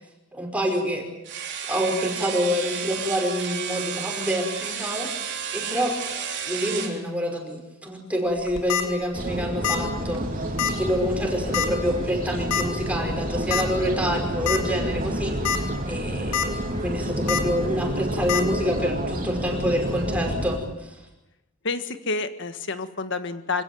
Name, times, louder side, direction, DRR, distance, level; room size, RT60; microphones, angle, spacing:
voice 1, 0.3-1.0 1.7-5.1 5.5-6.0 6.4-16.5 16.8-21.0, equal, 5° right, 1 dB, 5.3 m, -27 dB
sound 1, 1.2-7.0, right 7 dB, 60° right, 3.5 m, -32 dB
sound 2, 8.4-8.8 9.6-9.9 10.1-10.2 10.6-10.7 11.5-11.8 12.5-12.6 13.5-13.6 14.1-14.2 14.5-14.6 15.3-15.6 16.0-16.5 17.3-17.4 18.3-18.4, left 8 dB, 80° left, 2.9 m, -24 dB
sound 3, 9.1-20.6, right 1 dB, 40° right, 3.9 m, -29 dB
voice 2, 21.6-23.6, left 3 dB, 60° left, 9 dB, 1.6 m, -29 dB
26.5 x 16.5 x 9.4 m, 0.98 s
head